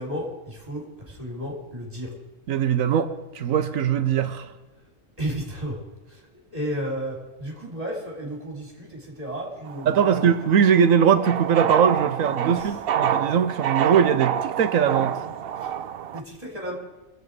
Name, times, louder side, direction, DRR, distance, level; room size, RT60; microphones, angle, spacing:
voice 1, 0.0-2.1 5.2-5.8 6.1-6.2 6.5-10.3 12.4-12.8 16.1-16.8, equal, 25° right, 3.6 m, -33 dB
voice 2, 2.5-4.5 9.8-15.2, right 7 dB, 75° right, 1.2 m, -21 dB
sound 1, 9.7-16.2, right 9 dB, 60° right, 0.6 m, -27 dB
21.5 x 8.0 x 4.8 m
omnidirectional pair, 1.4 m